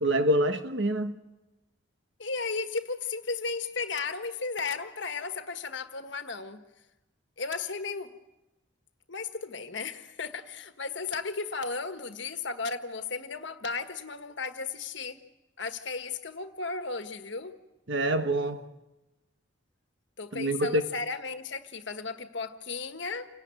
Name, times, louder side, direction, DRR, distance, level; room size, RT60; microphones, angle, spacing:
voice 1, 0.0-1.2 17.9-18.7 20.3-20.8, right 1 dB, 65° right, 1.5 m, -26 dB
voice 2, 2.2-6.6 7.4-8.1 9.1-15.2 15.6-17.5 20.2-23.3, left 4 dB, 65° left, 1.5 m, -35 dB
28.5 x 18.0 x 9.0 m
head